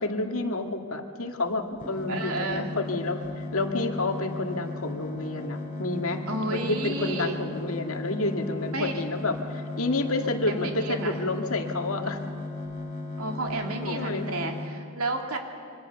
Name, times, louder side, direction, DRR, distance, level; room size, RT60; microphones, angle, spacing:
voice 1, 0.0-6.3 6.5-12.2 13.8-14.3, left 2 dB, 75° left, 5 dB, 2.0 m, -29 dB
sound 1, 1.8-14.7, left 2 dB, 35° left, 3.3 m, -36 dB
voice 2, 2.1-2.7 6.3-7.5 8.7-9.0 10.5-11.2 13.2-15.4, right 2 dB, 90° right, 3 dB, 2.9 m, -31 dB
26.0 x 24.5 x 6.9 m, 2.5 s
head